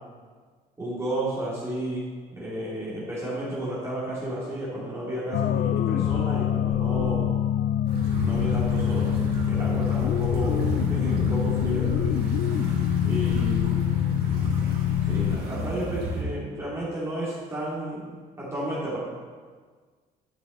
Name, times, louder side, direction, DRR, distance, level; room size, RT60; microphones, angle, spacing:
voice 1, 0.8-2.1 2.3-7.3 8.2-12.2 13.0-13.8 15.0-19.0, right 1 dB, 15° right, -8 dB, 2.8 m, -32 dB
sound 1, 5.3-15.4, left 11 dB, 60° left, 0.4 m, -25 dB
Weston Shore Calm Early Morning, 7.9-16.2, right 2 dB, 70° right, 2.4 m, -32 dB
11.5 x 6.6 x 4.0 m, 1.5 s
cardioid pair, 110°, 17 cm